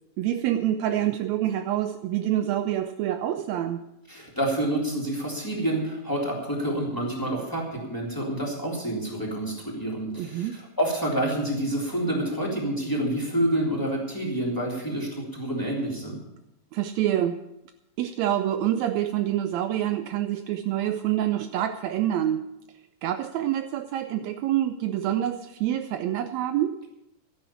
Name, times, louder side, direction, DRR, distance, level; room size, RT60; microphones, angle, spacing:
voice 1, 0.2-3.8 10.2-10.6 13.2-13.3 16.7-17.4 18.0-22.4 23.0-26.8, right 12 dB, 85° right, 9 dB, 1.5 m, -26 dB
voice 2, 4.1-16.2, right 1 dB, 5° left, -3 dB, 3.1 m, -28 dB
13.0 x 10.5 x 7.0 m, 0.87 s
omnidirectional pair, 3.8 m